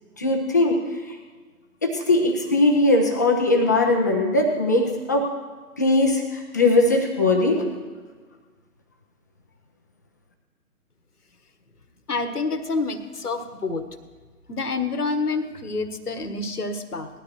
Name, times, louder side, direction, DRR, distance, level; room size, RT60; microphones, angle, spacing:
voice 1, 0.2-0.8 1.8-5.3 5.8-7.6, left 2 dB, 15° left, 1 dB, 0.5 m, -20 dB
voice 2, 12.1-13.8 14.5-17.1, left 3 dB, 90° left, 9 dB, 1.4 m, -27 dB
19.0 x 12.5 x 3.1 m, 1.4 s
figure-of-eight pair, 135°, 44 cm